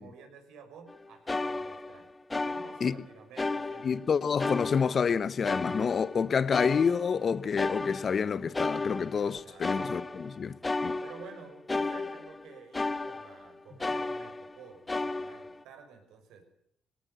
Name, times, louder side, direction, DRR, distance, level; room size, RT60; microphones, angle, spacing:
voice 1, 0.0-2.1 2.4-4.0 9.2-9.7 11.0-16.4, right 6 dB, 90° right, 6.0 m, -51 dB
sound 1, 0.9-1.0 1.3-3.0 3.4-4.1 4.4-7.3 7.6-13.5 13.8-14.6 14.9-15.6, left 3 dB, 20° left, 1.5 m, -34 dB
voice 2, 3.8-10.5 10.8-11.0, left 6 dB, 45° left, 1.0 m, -28 dB
21.5 x 17.5 x 8.1 m
cardioid pair, 90°, 0 cm